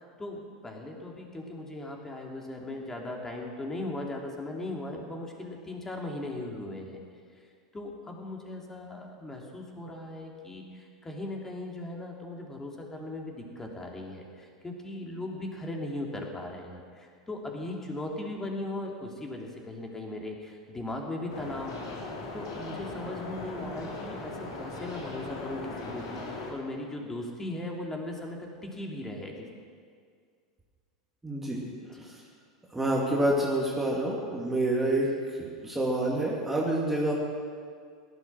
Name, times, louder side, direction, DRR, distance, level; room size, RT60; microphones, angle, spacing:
voice 1, 0.2-7.0 7.7-21.9 22.3-29.5 31.8-32.0, left 1 dB, 15° left, 0 dB, 3.0 m, -38 dB
sound 1, 21.3-26.5, left 3 dB, 70° left, 3.6 m, -39 dB
voice 2, 31.2-31.6 32.0-32.1 32.7-35.1 35.4-37.1, right 1 dB, 10° right, -4 dB, 2.7 m, -27 dB
17.0 x 11.5 x 6.2 m, 2.1 s
hypercardioid pair, 85°, 3 cm